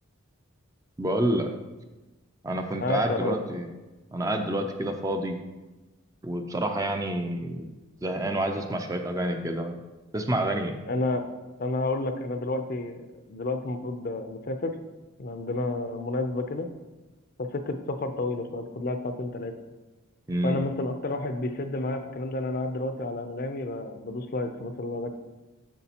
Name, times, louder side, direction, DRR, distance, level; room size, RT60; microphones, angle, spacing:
voice 1, 1.0-1.5 2.4-3.7 4.1-5.4 6.2-7.7 8.0-9.8 10.1-10.8 20.3-20.6, right 1 dB, 15° right, 5 dB, 0.4 m, -28 dB
voice 2, 2.8-3.4 10.9-11.3 11.6-14.7 15.2-16.7 17.4-19.6 20.4-25.1, left 2 dB, 45° left, 7 dB, 0.5 m, -30 dB
8.1 x 6.1 x 2.9 m, 1.1 s
head